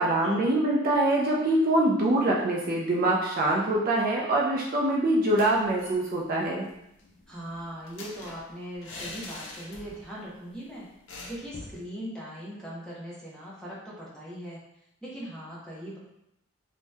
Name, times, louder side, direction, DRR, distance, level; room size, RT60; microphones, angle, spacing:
voice 1, 0.0-6.7, right 1 dB, 40° right, -3 dB, 0.4 m, -24 dB
sound 1, 5.2-6.0 6.3-6.4 6.7-10.2 10.4-10.6 11.1-11.8, left 2 dB, 60° left, 0.6 m, -44 dB
voice 2, 7.3-10.9 11.3-14.6 15.0-16.0, equal, 5° left, -7 dB, 0.6 m, -40 dB
2.7 x 2.1 x 3.3 m, 0.81 s
head